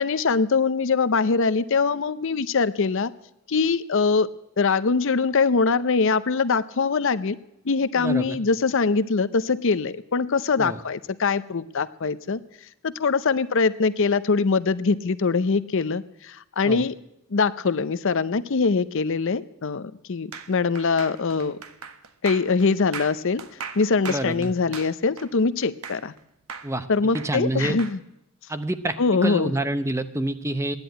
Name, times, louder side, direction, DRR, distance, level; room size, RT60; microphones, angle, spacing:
voice 1, 0.0-3.1 3.5-4.3 4.6-7.4 7.6-12.4 12.8-16.9 17.3-21.6 22.2-23.4 23.7-26.1 26.9-28.0 29.0-29.5, left 4 dB, 60° left, 14 dB, 0.6 m, -23 dB
voice 2, 8.0-8.4 10.6-10.8 16.6-16.9 24.1-24.5 26.6-26.9 27.1-27.8 28.5-30.8, right 1 dB, 15° right, 11 dB, 0.7 m, -27 dB
sound 1, 20.3-26.2 26.5-28.0, right 6 dB, 80° right, 1.2 m, -38 dB
15.0 x 10.5 x 9.1 m, 0.82 s
head